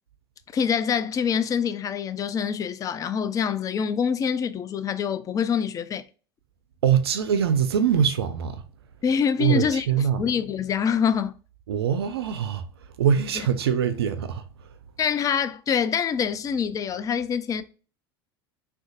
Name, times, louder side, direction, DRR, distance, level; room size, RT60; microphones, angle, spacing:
voice 1, 0.5-6.0 9.0-9.9 10.2-11.3 15.0-17.6, left 7 dB, 25° left, 0.3 m, -25 dB
voice 2, 6.8-8.6 9.4-10.2 11.7-12.7 13.0-14.5, right 8 dB, 80° right, 0.4 m, -23 dB
3.7 x 2.3 x 2.5 m
hypercardioid pair, 80°, 13 cm